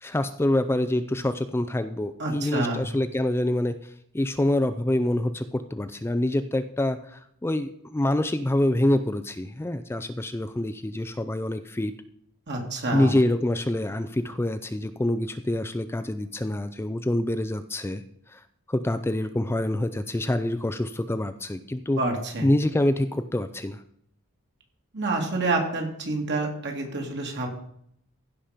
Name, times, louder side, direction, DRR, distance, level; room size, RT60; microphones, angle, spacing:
voice 1, 0.0-3.8 4.1-11.9 12.9-18.0 18.3-18.4 18.7-22.0 22.4-23.8, left 1 dB, 10° left, 10 dB, 0.4 m, -26 dB
voice 2, 2.2-2.8 12.5-13.2 22.0-22.5 24.9-27.5, right 2 dB, 55° right, 2 dB, 2.6 m, -28 dB
15.5 x 5.9 x 5.1 m, 0.70 s
head